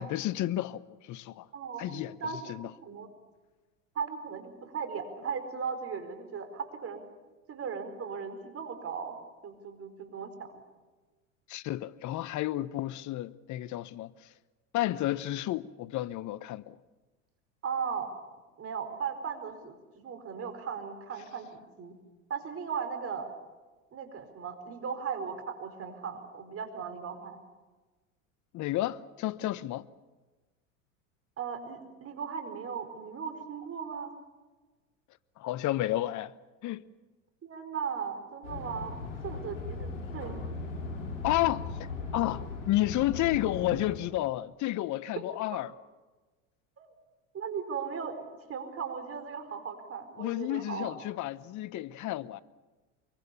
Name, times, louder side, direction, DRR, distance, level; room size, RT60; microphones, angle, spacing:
voice 1, 0.0-1.5 1.8-2.2 2.5-2.7 11.5-14.1 14.7-16.8 28.5-29.9 35.4-36.3 36.6-36.8 41.2-45.7 50.2-52.4, left 15 dB, 45° left, 1.0 m, -31 dB
voice 2, 1.5-3.1 3.9-7.1 7.5-9.1 9.4-10.6 17.6-18.1 18.6-21.9 22.3-23.3 23.9-27.4 31.4-34.1 37.4-39.0 39.2-40.6 45.5-45.6 46.8-46.9 47.3-48.2 48.5-50.9, right 6 dB, 35° right, 4.6 m, -37 dB
sound 1, 38.4-44.0, left 3 dB, 85° left, 5.6 m, -38 dB
24.0 x 23.0 x 7.1 m
hypercardioid pair, 90°, 39 cm